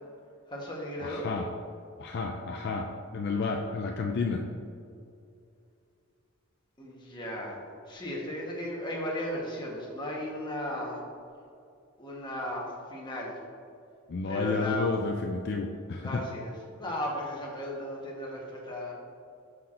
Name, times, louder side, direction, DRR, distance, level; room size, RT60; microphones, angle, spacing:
voice 1, 0.5-1.2 6.8-7.6 7.9-11.0 12.0-13.4 14.3-14.9 16.0-18.9, left 1 dB, 20° left, -3 dB, 1.1 m, -35 dB
voice 2, 1.0-1.5 2.0-4.5 14.1-16.2, left 4 dB, 50° left, 2 dB, 0.4 m, -31 dB
7.9 x 5.9 x 2.5 m, 2.5 s
head